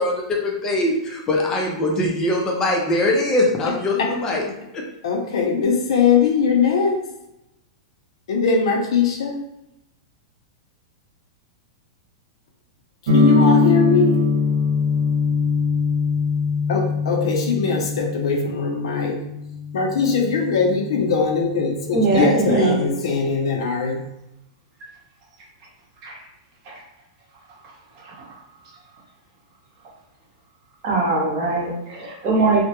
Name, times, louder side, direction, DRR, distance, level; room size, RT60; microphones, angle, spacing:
voice 1, 0.0-4.4 4.7-4.8 22.1-22.7, left 2 dB, 20° left, -1 dB, 0.4 m, -22 dB
voice 2, 5.0-7.0 8.3-9.4 13.1-14.3 16.7-19.2 19.7-24.0, left 5 dB, 80° left, 2 dB, 0.5 m, -21 dB
sound 1, 13.1-22.8, left 3 dB, 75° right, 0.5 m, -23 dB
voice 3, 21.9-22.8 26.0-26.2 26.6-26.8 28.0-28.3 30.8-32.6, right 3 dB, 40° right, -3 dB, 0.8 m, -21 dB
2.2 x 2.0 x 2.8 m, 0.85 s
supercardioid pair, 150°, 3 cm